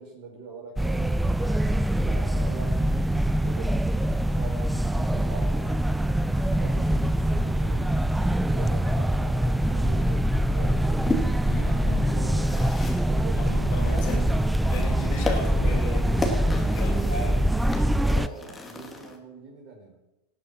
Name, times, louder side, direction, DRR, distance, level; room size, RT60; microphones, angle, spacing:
voice 1, 0.0-1.6 2.0-3.0 3.4-5.8 6.3-7.9 8.5-11.0 11.5-14.6 16.1-17.5 17.9-20.0, right 3 dB, 50° right, 0 dB, 4.9 m, -42 dB
sound 1, 0.8-18.3, right 1 dB, 5° right, 0.5 m, -24 dB
sound 2, 10.1-19.2, left 2 dB, 15° left, 2.4 m, -36 dB
voice 2, 11.4-12.6 13.3-14.2 14.7-16.3 16.6-17.3 17.6-17.7, left 3 dB, 55° left, 1 dB, 4.6 m, -36 dB
18.0 x 6.6 x 5.8 m, 0.94 s
hypercardioid pair, 95°, 0 cm